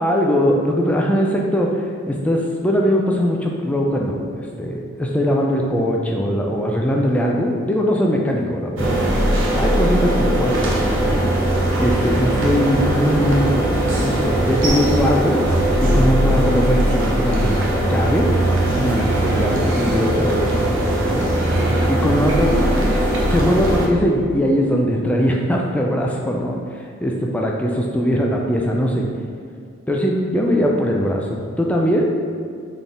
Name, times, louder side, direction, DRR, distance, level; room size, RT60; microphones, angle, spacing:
voice 1, 0.0-9.0 9.6-11.3 11.8-15.4 15.8-18.3 18.7-21.3 21.9-22.6 23.3-29.1 29.9-32.1, equal, 5° left, -1 dB, 0.3 m, -20 dB
sound 1, 8.8-23.9, right 1 dB, 60° right, 0.8 m, -19 dB
4.2 x 3.6 x 3.4 m, 2.2 s
head